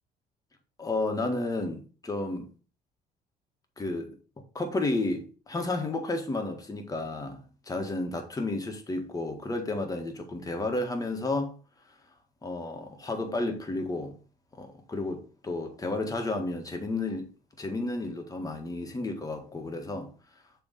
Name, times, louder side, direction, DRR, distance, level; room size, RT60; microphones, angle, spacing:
voice 1, 0.8-2.5 3.8-4.2 4.6-11.5 12.4-14.2 14.6-17.3 17.6-20.1, left 2 dB, 20° left, 1.7 m, -32 dB
7.0 x 3.6 x 5.3 m
cardioid pair, 110°, 17 cm